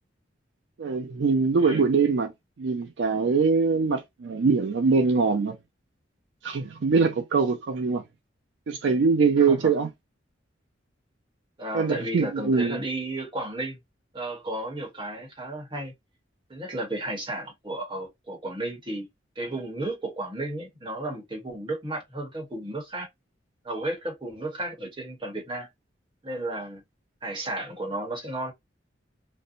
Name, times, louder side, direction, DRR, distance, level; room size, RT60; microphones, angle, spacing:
voice 1, 0.8-2.3 2.6-5.6 6.4-8.0 8.7-9.9 11.7-12.8, right 4 dB, 70° right, 0.4 m, -23 dB
voice 2, 11.6-13.8 14.1-15.9 16.5-19.1 19.3-23.1 23.6-25.7 26.2-26.8 27.2-28.5, right 1 dB, 25° right, 1.0 m, -33 dB
2.5 x 2.1 x 2.6 m
head